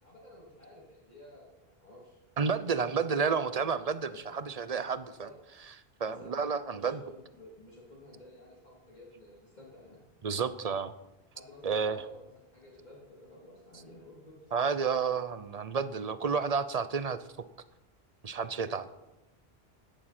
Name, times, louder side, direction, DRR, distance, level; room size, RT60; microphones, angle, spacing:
voice 1, 0.0-2.2 2.8-3.0 4.0-4.5 5.0-5.4 6.0-6.3 6.7-10.0 11.3-14.5 18.8-18.9, left 1 dB, 45° left, -6 dB, 3.1 m, -53 dB
voice 2, 2.4-5.3 6.0-7.0 10.2-10.9 11.6-12.0 14.5-17.2 18.2-18.9, right 5 dB, 40° right, 13 dB, 0.7 m, -31 dB
16.5 x 12.0 x 4.3 m, 0.96 s
omnidirectional pair, 1.1 m